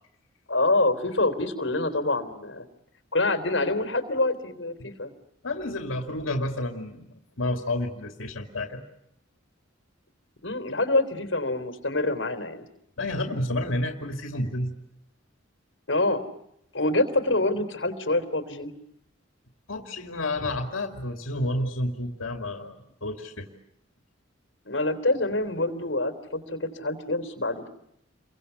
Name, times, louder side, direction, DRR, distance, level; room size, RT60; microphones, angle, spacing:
voice 1, 0.5-2.7 3.1-5.1 10.4-12.7 15.9-16.2 16.7-18.7 24.7-27.7, left 2 dB, 65° left, 8 dB, 3.5 m, -26 dB
voice 2, 5.4-8.8 13.0-14.7 19.7-22.7 23.0-23.5, left 1 dB, 90° left, 4 dB, 2.6 m, -30 dB
30.0 x 23.5 x 8.2 m, 0.80 s
head